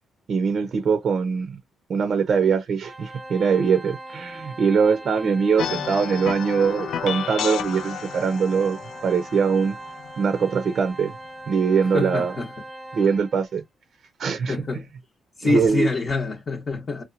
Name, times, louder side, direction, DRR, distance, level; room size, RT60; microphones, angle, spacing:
voice 1, 0.3-1.6 1.9-9.7 10.2-11.2 11.5-12.3 12.9-13.6 14.2-14.8 15.4-15.9, right 6 dB, 55° right, 0.6 m, -22 dB
Organ, 2.8-13.6, right 1 dB, 5° left, 0.7 m, -40 dB
sound 1, 5.6-11.0, left 9 dB, 75° left, 0.4 m, -32 dB
voice 2, 11.9-12.5 14.5-14.9 15.4-17.0, left 3 dB, 35° left, 0.8 m, -26 dB
2.8 x 2.2 x 2.5 m
cardioid pair, 90°, 0 cm